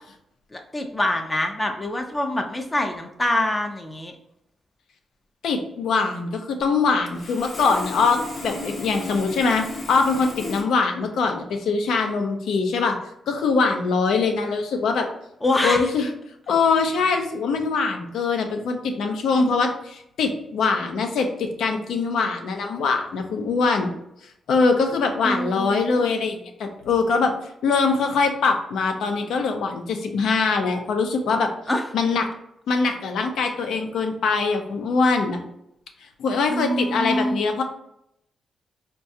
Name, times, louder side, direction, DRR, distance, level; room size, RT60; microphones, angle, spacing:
voice 1, 0.5-4.1 15.4-15.8 25.2-25.8 31.7-31.9 36.5-37.4, left 1 dB, 20° left, 4 dB, 0.4 m, -25 dB
voice 2, 5.4-8.2 8.4-15.1 15.6-16.1 16.5-23.9 24.5-27.3 27.6-31.5 31.9-32.3 32.7-35.4 36.2-37.6, left 4 dB, 80° left, 5 dB, 0.5 m, -23 dB
Sawing, 7.1-10.6, left 2 dB, 45° left, 0.7 m, -35 dB
4.6 x 2.2 x 2.7 m, 0.79 s
cardioid pair, 115°, 0 cm